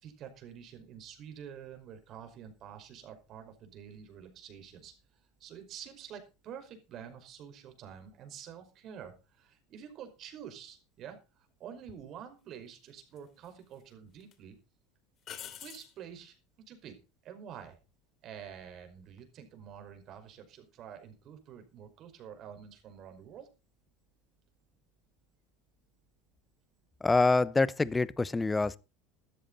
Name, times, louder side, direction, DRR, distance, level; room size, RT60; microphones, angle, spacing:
voice 1, 0.0-4.9 5.4-14.6 15.6-16.4 16.7-17.0 17.2-17.8 18.2-23.5, right 8 dB, 50° right, 5.1 m, -48 dB
sound 1, 11.9-12.0 13.2-13.8 14.2-14.3 15.2-15.9 19.0-19.4, left 9 dB, 45° left, 3.1 m, -46 dB
voice 2, 27.0-28.8, left 3 dB, 15° left, 0.9 m, -26 dB
14.0 x 13.0 x 4.1 m
hypercardioid pair, 85°, 0 cm